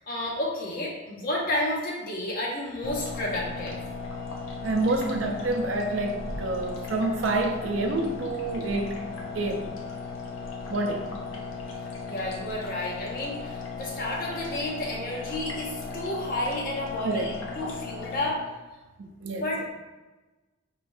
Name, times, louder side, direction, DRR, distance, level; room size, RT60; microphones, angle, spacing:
voice 1, 0.0-3.8 12.1-18.4 19.4-19.7, left 1 dB, 45° left, -3 dB, 0.7 m, -31 dB
sound 1, 2.8-18.3, left 4 dB, 90° left, 0.7 m, -36 dB
voice 2, 4.6-9.0 9.3-9.7 10.7-11.0 17.0-17.3 19.0-19.4, right 2 dB, 65° right, 4 dB, 0.5 m, -28 dB
4.9 x 3.1 x 2.6 m, 1.2 s
head